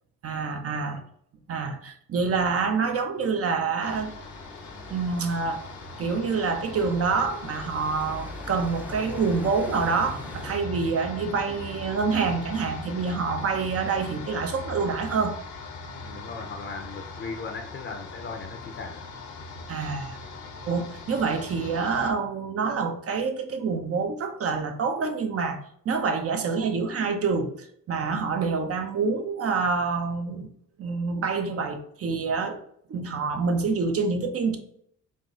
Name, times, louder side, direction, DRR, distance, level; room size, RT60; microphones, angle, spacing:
voice 1, 0.2-1.0 1.5-4.1 4.9-5.6 6.0-15.4 19.7-20.2 20.7-25.6 25.8-30.5 30.8-32.6 32.9-34.6, right 4 dB, 50° right, 6 dB, 0.8 m, -27 dB
sound 1, 3.8-22.1, left 3 dB, 75° left, 0.9 m, -40 dB
sound 2, 3.9-10.5, equal, 5° right, 0.6 m, -42 dB
voice 2, 16.0-19.1, left 4 dB, 40° left, 4 dB, 0.6 m, -38 dB
3.8 x 2.6 x 3.7 m, 0.66 s
cardioid pair, 90°, 30 cm